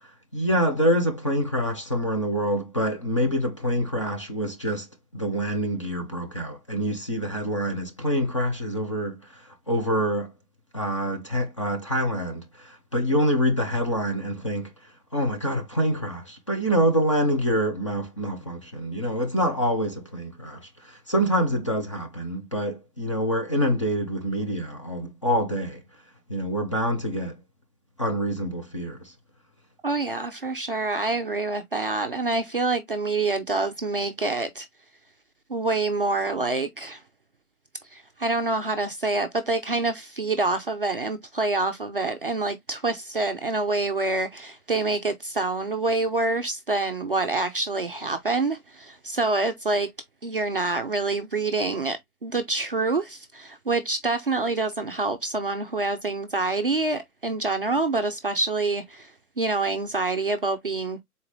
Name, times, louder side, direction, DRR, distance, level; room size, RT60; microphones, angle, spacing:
voice 1, 0.3-4.9 5.1-10.3 10.7-25.8 26.3-27.3 28.0-29.1, equal, 20° left, 0.5 m, -26 dB
voice 2, 29.8-34.7 35.5-37.0 37.9-49.9 50.2-61.0, right 3 dB, 40° right, 0.4 m, -26 dB
4.0 x 3.7 x 2.9 m
hypercardioid pair, 155°, 46 cm